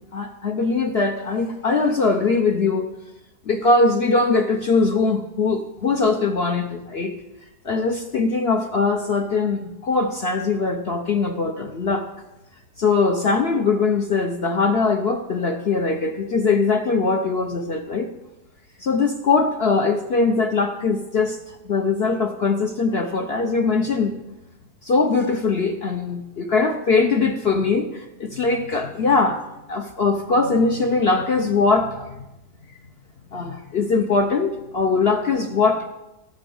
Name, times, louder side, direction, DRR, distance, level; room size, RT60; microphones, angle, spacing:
voice 1, 0.0-2.9 3.5-7.1 7.6-12.1 12.8-18.1 18.8-24.2 24.8-29.4 29.7-32.1 33.3-35.9, left 4 dB, 50° left, 5 dB, 0.8 m, -21 dB
17.5 x 6.9 x 5.4 m, 0.97 s
omnidirectional pair, 1.8 m